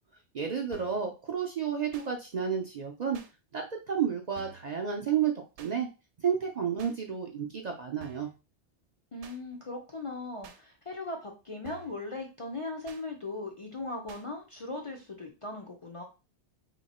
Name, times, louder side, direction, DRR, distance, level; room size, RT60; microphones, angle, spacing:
voice 1, 0.3-3.2 3.5-5.3 5.6-5.9 6.2-8.3, right 7 dB, 50° right, 2 dB, 0.5 m, -31 dB
sound 1, 0.7-1.1 1.9-2.1 3.1-3.3 4.3-4.7 5.6-5.7 6.8-7.0 8.0-8.4 9.2-9.4 10.4-10.6 11.6-12.0 12.9-13.0 14.1-14.2, right 6 dB, 85° right, 0.9 m, -49 dB
voice 2, 9.1-16.0, left 2 dB, 40° left, 1 dB, 0.5 m, -39 dB
3.0 x 2.8 x 4.1 m, 0.30 s
omnidirectional pair, 1.1 m